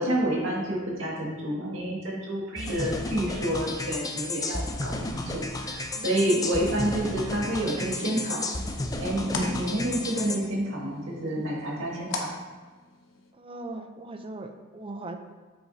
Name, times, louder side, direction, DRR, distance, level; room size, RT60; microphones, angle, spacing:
voice 1, 0.0-8.4 9.0-12.3, right 1 dB, 70° right, -4 dB, 2.1 m, -29 dB
voice 2, 2.5-2.9 5.9-6.4 9.2-9.6 13.4-15.2, right 2 dB, 30° right, 6 dB, 0.6 m, -39 dB
sound 1, 2.6-10.4, left 2 dB, 20° left, 0.5 m, -33 dB
sound 2, 7.9-13.3, left 3 dB, 70° left, 0.9 m, -41 dB
8.0 x 6.2 x 2.8 m, 1.4 s
head